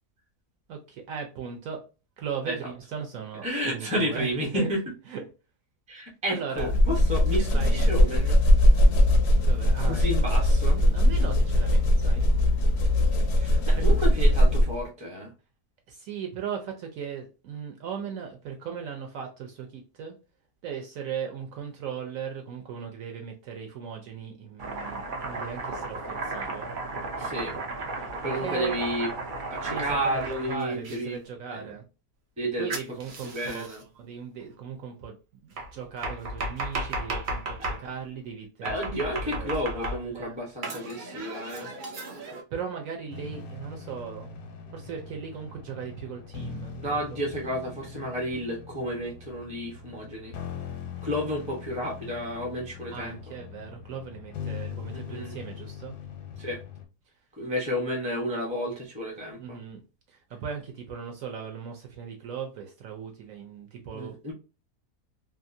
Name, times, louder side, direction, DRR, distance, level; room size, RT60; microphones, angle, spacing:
voice 1, 0.7-1.8 2.2-4.7 5.1-5.2 6.3-6.7 7.5-8.1 9.3-10.0 10.7-12.3 13.5-13.8 15.9-20.2 20.6-26.7 28.4-28.8 29.6-31.8 32.6-38.8 39.2-40.4 42.5-44.3 44.7-46.8 47.1-47.2 52.9-55.9 59.4-59.8 60.1-64.2, right 7 dB, 70° right, 3 dB, 0.9 m, -38 dB
voice 2, 3.4-4.8 5.9-8.4 9.9-10.8 13.3-15.3 27.2-27.6 28.0-29.1 29.5-31.2 31.5-31.6 32.4-32.7 33.3-33.8 37.6-37.7 38.6-41.7 46.8-50.4 51.0-53.2 54.9-55.4 56.4-56.6 57.3-59.6 63.9-64.3, equal, 5° right, -1 dB, 0.5 m, -31 dB
sound 1, 6.6-14.9, left 1 dB, 65° left, 0.6 m, -20 dB
Domestic sounds home sounds, 24.6-31.0 32.7-33.8 35.6-37.8 38.6-40.2 40.6-42.4, right 2 dB, 85° right, 0.4 m, -34 dB
sound 2, 43.1-56.9, left 6 dB, 90° left, 1.3 m, -41 dB
2.8 x 2.4 x 2.5 m, 0.31 s
omnidirectional pair, 1.7 m